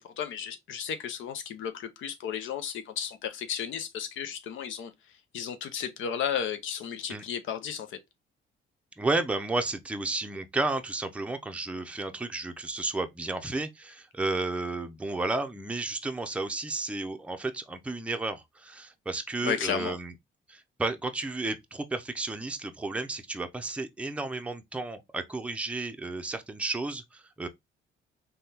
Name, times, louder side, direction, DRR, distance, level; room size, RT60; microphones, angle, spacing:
voice 1, 0.0-4.9 5.3-8.0 19.4-19.9, left 8 dB, 75° left, 0.5 m, -33 dB
voice 2, 9.0-20.1 20.5-27.5, right 2 dB, 5° right, 0.5 m, -32 dB
3.4 x 2.3 x 2.7 m
cardioid pair, 90°, 20 cm